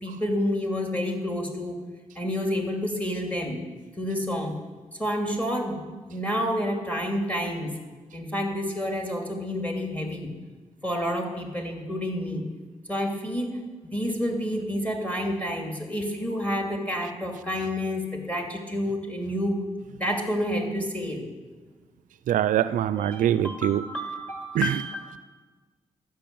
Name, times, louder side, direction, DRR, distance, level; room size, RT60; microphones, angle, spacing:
voice 1, 0.0-1.8 2.2-3.6 4.0-4.6 5.0-5.8 6.1-7.8 8.1-10.3 10.8-12.4 12.9-19.6 20.0-21.3 23.0-25.2, equal, 10° left, 2 dB, 2.5 m, -29 dB
voice 2, 22.3-23.8 24.5-24.8, right 11 dB, 90° right, 15 dB, 0.4 m, -23 dB
12.0 x 6.4 x 8.4 m, 1.4 s
cardioid pair, 80°, 13 cm